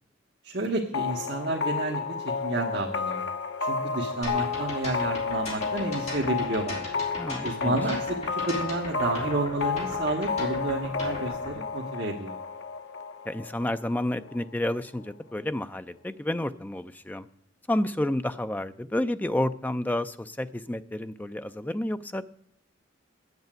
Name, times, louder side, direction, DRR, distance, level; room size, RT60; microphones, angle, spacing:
voice 1, 0.4-3.2 3.6-6.8 7.4-12.4, right 2 dB, 55° right, -1 dB, 1.3 m, -30 dB
sound 1, 0.9-14.4, left 5 dB, 70° left, 0.7 m, -32 dB
sound 2, 4.2-11.5, left 1 dB, 35° left, 3.8 m, -38 dB
voice 2, 7.2-7.8 13.3-17.3 17.7-22.2, left 1 dB, 10° left, 11 dB, 0.4 m, -30 dB
8.6 x 8.1 x 9.0 m, 0.73 s
head